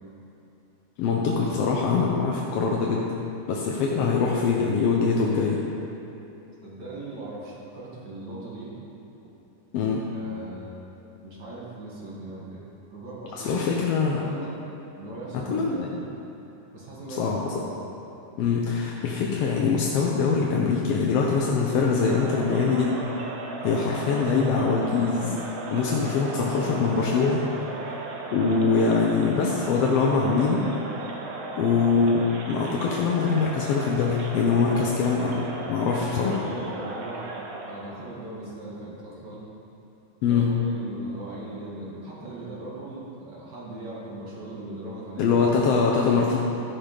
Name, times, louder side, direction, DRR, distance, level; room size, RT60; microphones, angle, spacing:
voice 1, 1.0-3.0 3.5-5.6 9.7-10.0 13.4-14.2 15.5-16.0 17.2-17.7 18.4-22.9 23.6-25.4 25.7-27.4 27.8-28.0 28.3-30.6 31.6-36.4 40.2-40.5 45.2-46.4, left 5 dB, 70° left, -2 dB, 1.5 m, -23 dB
voice 2, 6.6-8.7 9.9-10.8 11.2-12.6 12.9-13.7 14.0-14.6 14.9-15.9 16.7-17.7 35.9-37.3 37.7-39.4 40.2-45.4 45.7-45.9, right 2 dB, 40° right, -5 dB, 1.9 m, -39 dB
Crowd, 21.7-38.0, right 2 dB, 70° right, 1.2 m, -36 dB
13.5 x 6.0 x 5.1 m, 2.9 s
omnidirectional pair, 3.5 m